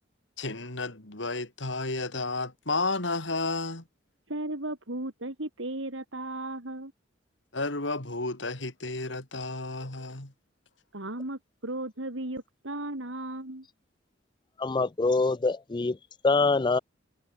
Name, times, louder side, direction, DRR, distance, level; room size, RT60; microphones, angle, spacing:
voice 1, 0.4-3.8 7.5-10.3, left 3 dB, 70° left, 3.5 m, -32 dB
voice 2, 4.3-6.9 10.9-13.7, right 1 dB, 80° right, 3.5 m, -35 dB
voice 3, 14.6-16.0 16.2-16.8, left 3 dB, 25° left, 0.4 m, -24 dB
head